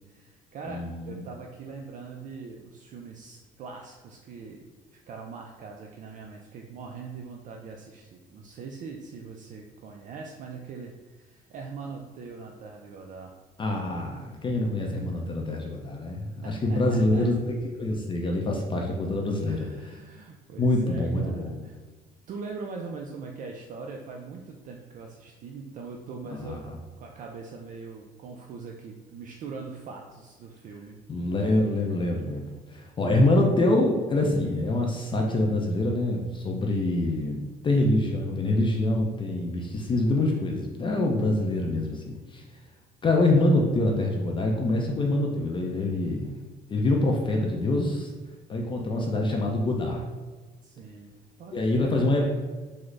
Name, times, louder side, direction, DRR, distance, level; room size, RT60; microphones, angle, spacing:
voice 1, 0.0-4.6 5.1-13.4 16.4-17.3 19.4-21.8 22.3-26.7 27.0-31.0 50.6-51.1 51.4-52.4, right 4 dB, 50° right, 1 dB, 0.4 m, -41 dB
voice 2, 0.7-1.2 13.6-17.5 17.8-19.7 20.6-21.6 26.3-26.8 31.1-42.4 43.0-46.3 46.7-48.1 48.5-50.0 51.5-52.3, left 2 dB, 30° left, 0 dB, 0.4 m, -25 dB
3.7 x 2.0 x 3.2 m, 1.3 s
cardioid pair, 110°, 17 cm